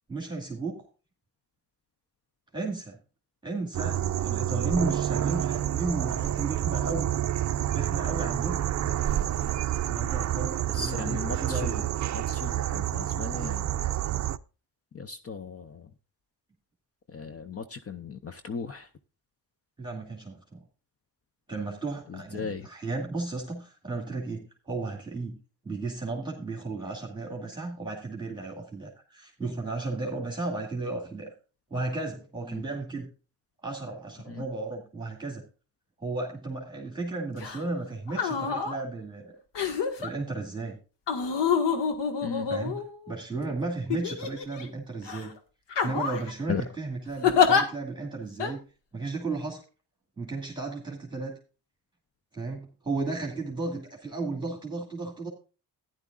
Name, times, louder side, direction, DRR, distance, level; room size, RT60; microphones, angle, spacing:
voice 1, 0.1-0.8 2.5-3.0 3.4-7.1 7.7-8.6 9.9-11.8 19.8-20.6 21.5-25.4 25.6-31.3 31.7-33.1 33.6-35.4 36.0-39.4 40.0-40.8 42.5-45.3 45.8-48.6 48.9-49.6 50.2-51.4 52.3-55.3, right 3 dB, 10° right, 2.4 m, -34 dB
sound 1, 3.7-14.4, right 11 dB, 45° right, 0.5 m, -28 dB
voice 2, 10.7-11.8 12.1-13.8 14.9-15.9 17.1-18.9 22.1-22.7 32.5-32.6 34.3-34.4 42.2-42.5 46.5-46.6, left 5 dB, 35° left, 0.7 m, -37 dB
sound 2, 37.4-37.6 38.1-38.8 39.5-40.1 41.1-43.1 43.9-44.6 45.1-45.3 45.7-46.3 47.2-47.6 48.4-48.5, left 6 dB, 90° left, 1.7 m, -26 dB
13.5 x 10.5 x 2.4 m
cardioid pair, 100°, 41 cm